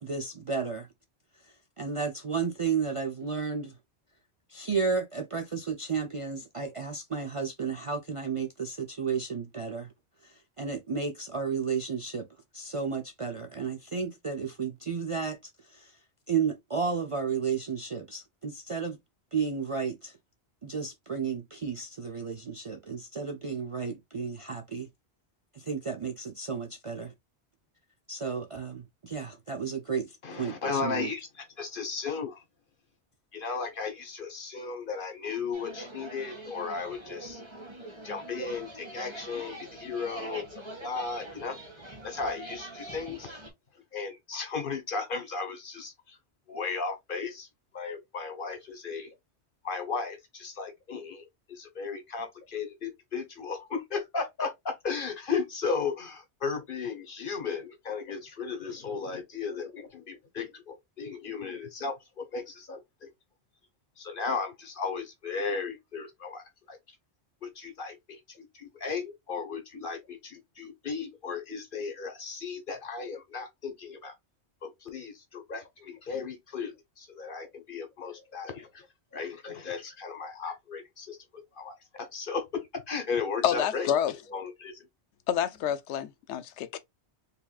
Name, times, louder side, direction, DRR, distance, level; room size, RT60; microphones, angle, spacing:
voice 1, 0.0-0.9 1.8-3.7 4.5-9.9 10.2-12.3 12.5-16.0 16.3-19.0 19.3-20.2 20.6-24.9 25.5-27.1 28.1-31.1, right 5 dB, 45° right, 0.4 m, -33 dB
voice 2, 30.2-32.4 33.3-37.4 38.0-41.6 42.0-43.3 43.9-46.2 46.5-47.5 47.7-49.1 49.6-63.1 64.0-66.8 67.4-74.1 74.6-78.9 79.1-81.2 81.5-83.9 84.3-84.9, left 5 dB, 50° left, 1.3 m, -35 dB
sound 1, 35.5-43.5, right 2 dB, 25° right, 1.7 m, -43 dB
voice 3, 83.4-84.1 85.3-86.8, left 9 dB, 85° left, 0.9 m, -28 dB
4.7 x 3.3 x 2.3 m
omnidirectional pair, 1.1 m